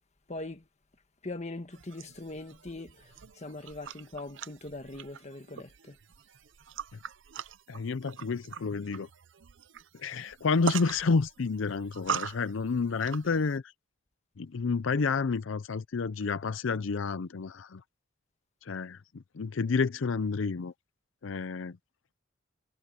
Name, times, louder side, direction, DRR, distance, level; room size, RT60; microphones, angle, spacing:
voice 1, 0.3-0.6 1.2-6.0, left 2 dB, 35° left, 1.5 m, -41 dB
sound 1, 1.7-13.6, right 7 dB, 70° right, 0.6 m, -42 dB
voice 2, 7.7-9.1 9.9-13.7 14.4-17.8 18.6-20.7 21.2-21.8, left 4 dB, 80° left, 0.5 m, -30 dB
head